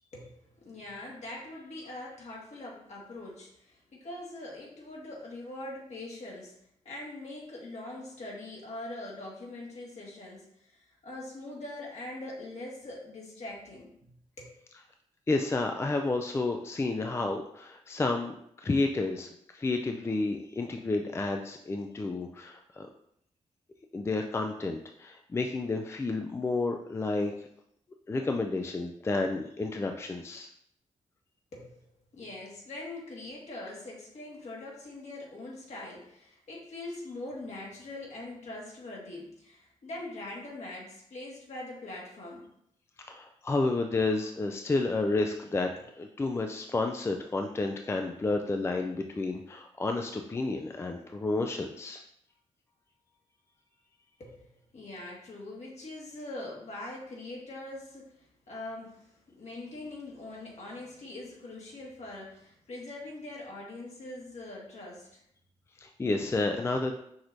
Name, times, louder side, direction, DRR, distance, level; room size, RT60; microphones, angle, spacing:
voice 1, 0.1-6.5 6.8-14.5 31.5-31.9 32.1-42.4 54.2-65.2 66.2-66.3 66.7-66.8, left 2 dB, 60° left, -3 dB, 1.7 m, -43 dB
voice 2, 15.3-18.3 18.6-22.9 23.9-27.5 28.1-30.5 43.0-52.0 65.8-67.0, left 3 dB, 20° left, 4 dB, 0.3 m, -31 dB
6.1 x 3.1 x 2.6 m, 0.72 s
cardioid pair, 80°, 13 cm